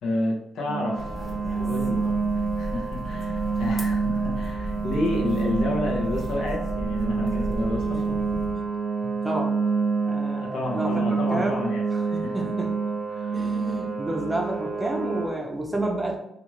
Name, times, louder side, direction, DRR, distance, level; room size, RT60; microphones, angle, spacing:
voice 1, 0.0-1.1 1.6-2.0 2.3-8.0 10.4-12.4 13.1-13.5, left 1 dB, 70° left, -2 dB, 0.7 m, -30 dB
sound 1, 0.7-15.3, right 4 dB, 65° right, 0.4 m, -28 dB
sound 2, 1.0-8.5, equal, 30° left, 0.7 m, -34 dB
voice 2, 8.1-8.6 9.0-9.6 10.1-10.9 11.3-11.6 11.9-12.7 13.3-16.2, right 1 dB, 10° right, 1 dB, 0.6 m, -30 dB
2.5 x 2.4 x 3.0 m, 0.81 s
cardioid pair, 90°, 0 cm